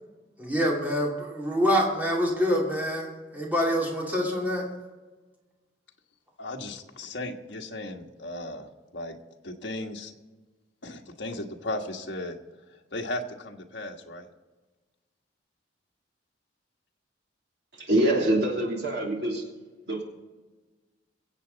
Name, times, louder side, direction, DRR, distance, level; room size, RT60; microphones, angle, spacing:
voice 1, 0.4-3.1 3.3-4.7, equal, 10° right, -3 dB, 2.7 m, -26 dB
voice 2, 6.4-9.2 9.4-10.1 10.8-12.4 12.9-14.3, left 1 dB, 65° left, 1 dB, 1.5 m, -36 dB
voice 3, 17.7-19.4 19.9-20.0, right 1 dB, 60° right, -1 dB, 3.1 m, -25 dB
23.0 x 8.2 x 4.1 m, 1.3 s
head